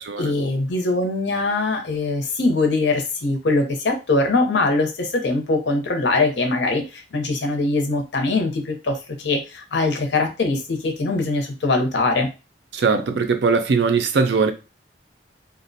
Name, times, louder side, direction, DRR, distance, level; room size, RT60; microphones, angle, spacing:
voice 1, 0.2-12.3, left 3 dB, 75° left, 0.6 m, -22 dB
voice 2, 12.7-14.5, right 4 dB, 70° right, 0.4 m, -20 dB
2.4 x 2.1 x 2.6 m
head